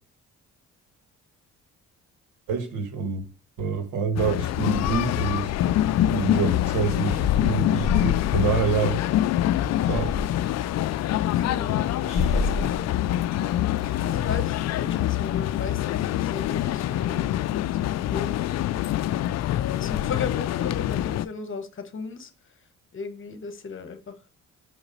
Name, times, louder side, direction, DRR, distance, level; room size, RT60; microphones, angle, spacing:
voice 1, 2.5-3.2 3.6-5.5 6.1-9.0 9.9-10.2, right 5 dB, 85° right, 1.5 m, -27 dB
sound 1, 4.2-21.3, left 13 dB, 60° left, 0.4 m, -25 dB
Breathing, 6.0-14.5, left 2 dB, 20° left, 1.6 m, -35 dB
voice 2, 10.8-12.9 13.8-18.8 19.5-22.3 22.9-24.2, left 5 dB, 40° left, 1.1 m, -37 dB
5.9 x 4.0 x 5.3 m
cardioid pair, 90°, 30 cm